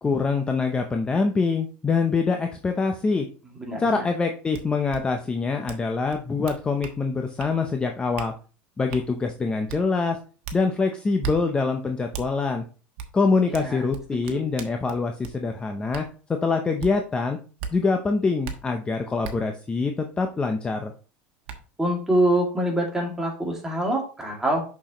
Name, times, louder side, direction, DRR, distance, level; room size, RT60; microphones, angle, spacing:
voice 1, 0.0-3.3 3.8-8.3 8.8-10.2 10.5-12.6 13.1-16.0 16.4-17.4 17.7-20.9, left 4 dB, 15° left, 5 dB, 0.7 m, -24 dB
voice 2, 3.6-4.1 13.5-13.8 14.1-14.4 21.8-24.6, right 1 dB, 10° right, -1 dB, 2.4 m, -25 dB
sound 1, 4.5-4.6 4.9-5.0 5.7-5.8 6.1-7.0 7.4-7.5 8.2-8.3 8.9-9.0 9.7-9.8 10.4-10.6 11.2-11.4 12.1-12.3 13.0-13.1 13.5-15.4 15.9-16.1 16.8-16.9 17.6-17.7 18.4-18.6 19.2-19.3 20.8-20.9 21.5-21.6, right 7 dB, 65° right, 1.3 m, -35 dB
6.3 x 6.2 x 3.0 m, 0.37 s
supercardioid pair, 130°, 6 cm